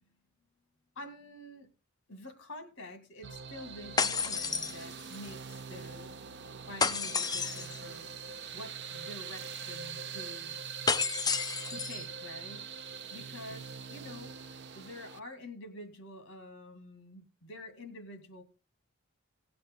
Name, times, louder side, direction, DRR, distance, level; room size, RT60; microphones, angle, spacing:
voice 1, 1.0-1.7 2.1-6.1 6.7-8.1 8.5-10.6 11.7-12.7 13.1-18.4, left 1 dB, 60° left, 8 dB, 2.3 m, -48 dB
sound 1, 3.2-15.2, right 6 dB, 55° right, 0.6 m, -43 dB
sound 2, 4.0-5.3 6.8-7.8 10.9-12.0, left 5 dB, 20° left, 0.5 m, -31 dB
18.0 x 7.8 x 3.7 m, 0.29 s
head